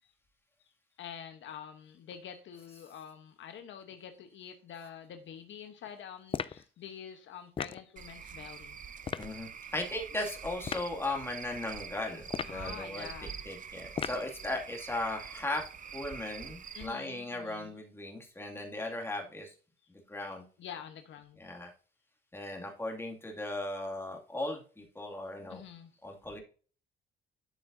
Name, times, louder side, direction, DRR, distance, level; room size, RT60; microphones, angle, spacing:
voice 1, 1.0-8.8 12.4-13.4 16.7-17.8 20.6-21.4 25.5-25.9, left 8 dB, 70° left, 7 dB, 1.0 m, -47 dB
sound 1, 6.3-6.6 7.6-7.8 9.0-9.3 10.6-10.9 12.3-12.7 14.0-14.3, left 6 dB, 30° left, 0.4 m, -36 dB
Cricket / Frog, 8.0-16.9, right 7 dB, 40° right, 0.7 m, -45 dB
voice 2, 9.2-13.1 13.4-15.6 15.9-19.5 19.9-20.4 21.4-21.7 22.3-25.6 26.0-26.4, left 2 dB, 10° left, 1 dB, 2.2 m, -37 dB
12.0 x 5.8 x 2.6 m, 0.39 s
cardioid pair, 90°, 20 cm